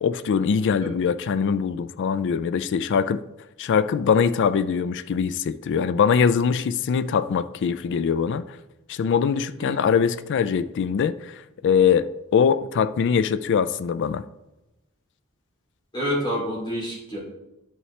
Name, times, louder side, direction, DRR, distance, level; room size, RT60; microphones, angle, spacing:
voice 1, 0.0-3.2 3.6-8.6 8.9-12.1 12.3-14.2, left 6 dB, 55° left, 14 dB, 0.3 m, -22 dB
voice 2, 15.9-17.2, equal, 20° left, -5 dB, 2.8 m, -28 dB
11.0 x 5.6 x 3.2 m, 0.97 s
head